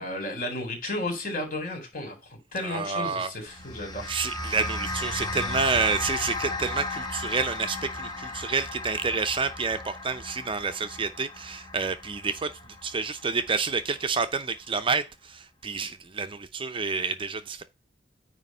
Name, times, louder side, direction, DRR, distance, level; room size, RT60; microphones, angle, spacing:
voice 1, 0.0-4.1, left 1 dB, 50° left, 3.7 m, -33 dB
voice 2, 2.6-3.3 4.1-12.5 12.8-17.6, right 4 dB, 30° right, 0.6 m, -29 dB
sound 1, 3.5-14.0, left 2 dB, 25° left, 1.3 m, -35 dB
9.5 x 3.2 x 5.5 m
head